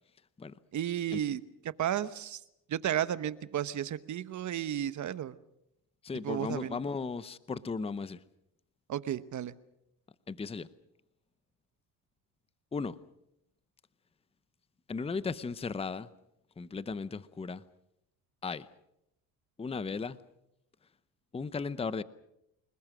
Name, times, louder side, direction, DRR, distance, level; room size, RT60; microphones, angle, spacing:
voice 1, 0.7-1.4 1.8-2.4 2.7-5.4 6.2-6.8 8.9-9.5, right 10 dB, 45° right, 15 dB, 1.0 m, -33 dB
voice 2, 6.0-8.2 10.3-10.7 12.7-13.0 14.9-16.1 16.6-17.6 18.4-18.7 19.6-20.2 21.3-22.0, left 4 dB, 15° left, 16 dB, 0.8 m, -36 dB
29.0 x 20.0 x 6.2 m, 0.81 s
cardioid pair, 105°, 41 cm